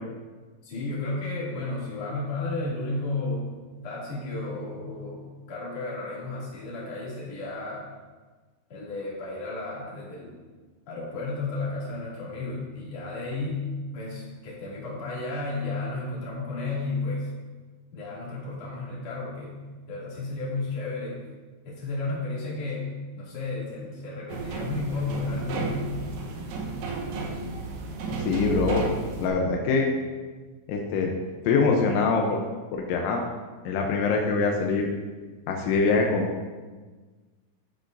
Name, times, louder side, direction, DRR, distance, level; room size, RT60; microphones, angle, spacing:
voice 1, 0.6-3.5 3.8-7.9 8.7-10.4 10.9-17.3 17.9-19.6 19.9-21.2 21.6-26.0, left 2 dB, 40° left, -7 dB, 3.1 m, -33 dB
sound 1, 24.3-29.3, right 4 dB, 80° right, 2.0 m, -32 dB
voice 2, 28.3-28.9 29.2-29.9 30.7-31.1 31.5-32.4 32.7-33.2 33.7-34.9 35.5-36.3, left 4 dB, 80° left, 1 dB, 3.1 m, -23 dB
11.5 x 8.6 x 2.6 m, 1.4 s
omnidirectional pair, 5.3 m